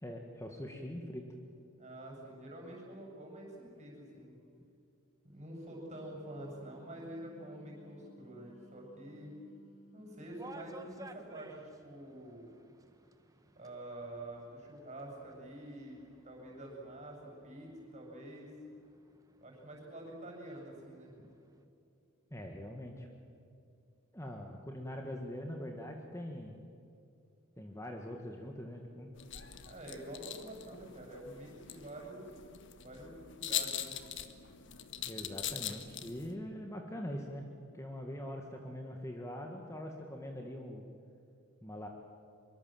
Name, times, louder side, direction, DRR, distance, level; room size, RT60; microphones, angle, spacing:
voice 1, 0.0-1.3 22.3-23.1 24.1-26.6 27.6-29.2 35.0-40.9 41.6-41.9, equal, 15° left, 2 dB, 1.7 m, -43 dB
voice 2, 1.8-4.4 5.2-9.3 9.9-12.5 13.5-16.0 16.2-18.5 19.4-21.3 29.7-32.3 32.8-34.0, right 1 dB, 30° right, 0 dB, 7.7 m, -47 dB
Wind instrument woodwind instrument, 5.5-10.8, right 1 dB, 85° left, 6.3 m, -60 dB
sound 1, 10.2-21.6, right 2 dB, 15° right, 1.4 m, -57 dB
sound 2, 29.2-36.3, left 10 dB, 60° left, 1.4 m, -42 dB
24.0 x 23.5 x 7.7 m, 2.6 s
head